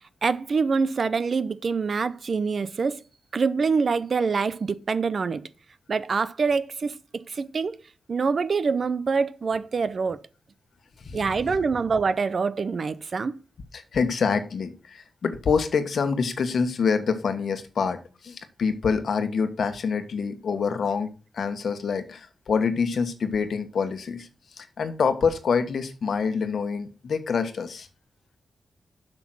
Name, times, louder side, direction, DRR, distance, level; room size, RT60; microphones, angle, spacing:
voice 1, 0.2-3.0 3.3-5.4 5.9-7.8 8.1-10.2 11.1-13.4, right 5 dB, 55° right, 0.6 m, -25 dB
voice 2, 13.7-21.1 21.3-24.3 24.6-27.9, left 5 dB, 70° left, 1.3 m, -26 dB
7.7 x 6.1 x 6.1 m
wide cardioid pair, 105°, 0 cm